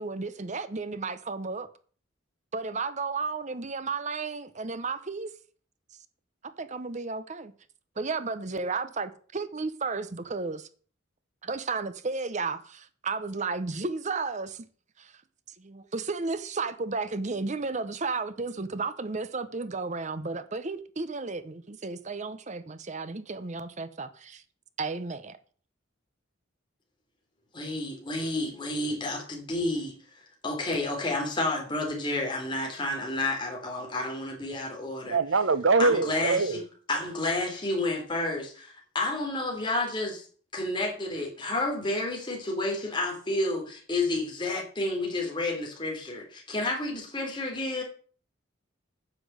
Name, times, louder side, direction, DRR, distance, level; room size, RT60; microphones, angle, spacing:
voice 1, 0.0-1.7 2.5-5.3 6.6-7.5 8.0-10.7 11.4-14.6 15.0-15.1 15.6-24.4 24.8-25.4, right 4 dB, 35° right, 0.8 m, -33 dB
voice 2, 27.5-30.0 30.4-35.2 35.8-36.6 36.9-40.3 40.5-47.8, left 2 dB, 25° left, 3.4 m, -30 dB
voice 3, 35.1-36.6, right 4 dB, 65° right, 0.9 m, -23 dB
9.9 x 6.1 x 8.0 m
head